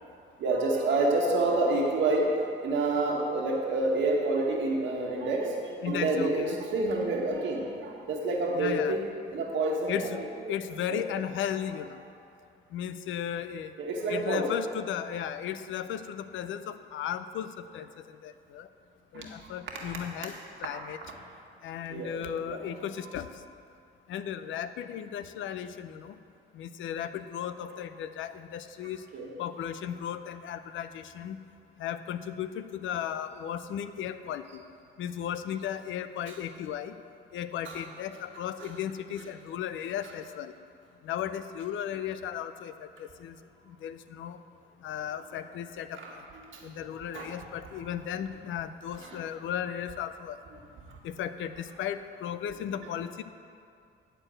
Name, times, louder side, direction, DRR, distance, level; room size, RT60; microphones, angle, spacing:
voice 1, 0.4-2.3 2.6-9.1 9.3-10.3 10.9-11.0 13.8-14.6 19.1-19.5 21.0-21.1 21.9-22.2 22.4-22.6 23.0-23.1 29.1-29.3 36.3-36.4 37.6-37.9 38.3-38.7 40.0-40.1 45.9-46.6 46.9-47.4 47.7-47.9 48.9-49.2 50.9-51.0 52.8-52.9, right 2 dB, 75° right, -1 dB, 1.7 m, -29 dB
voice 2, 5.8-6.6 8.6-9.0 9.9-10.2 10.5-12.0 12.7-13.7 14.1-18.7 19.1-20.3 20.6-21.0 21.6-23.3 24.1-26.2 26.5-29.0 29.4-31.4 31.8-34.6 35.0-37.0 37.3-40.5 41.0-43.4 43.7-44.4 44.8-46.2 46.6-50.4 51.0-53.2, left 9 dB, 75° left, 11 dB, 0.5 m, -35 dB
10.0 x 4.5 x 7.6 m, 2.4 s
cardioid pair, 90°, 20 cm